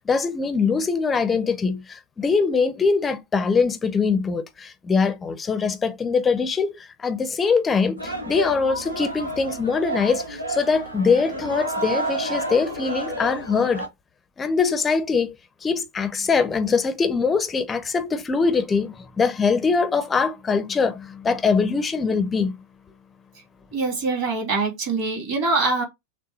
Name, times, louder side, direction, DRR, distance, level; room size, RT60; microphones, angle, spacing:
voice 1, 0.1-13.8 14.4-15.3 15.6-22.5, left 5 dB, 15° left, 0.6 m, -22 dB
sound 1, 8.0-13.9, right 1 dB, 80° right, 1.0 m, -30 dB
voice 2, 23.7-25.8, right 3 dB, 45° right, 2.7 m, -24 dB
6.4 x 2.1 x 2.9 m
figure-of-eight pair, 90°, 0 cm